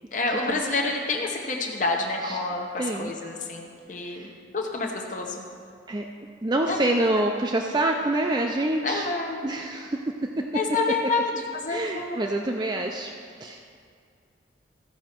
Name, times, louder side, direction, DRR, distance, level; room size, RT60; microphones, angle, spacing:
voice 1, 0.1-5.5 6.7-6.8 8.8-9.5 10.5-12.2, left 3 dB, 40° left, 1 dB, 0.9 m, -28 dB
voice 2, 2.8-3.1 4.1-4.3 5.9-6.1 6.4-9.1 9.4-10.5 11.7-13.6, right 1 dB, 20° right, 2 dB, 0.4 m, -27 dB
15.5 x 6.1 x 4.4 m, 2.2 s
head